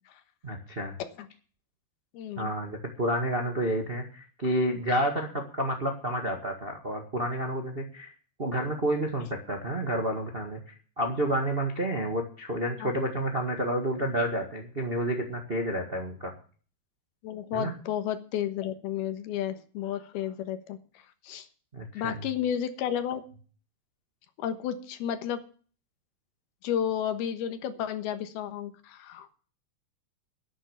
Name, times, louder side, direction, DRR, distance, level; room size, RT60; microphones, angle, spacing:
voice 1, 0.4-0.9 2.4-8.1 8.4-16.3 17.5-17.7 21.7-22.3, right 1 dB, 40° right, 3 dB, 0.8 m, -30 dB
voice 2, 2.1-2.5 12.8-12.9 17.2-20.8 21.2-21.5 21.9-23.2 24.4-25.4 26.6-29.4, left 9 dB, 85° left, 10 dB, 3.2 m, -32 dB
11.5 x 9.9 x 7.1 m, 0.41 s
omnidirectional pair, 4.4 m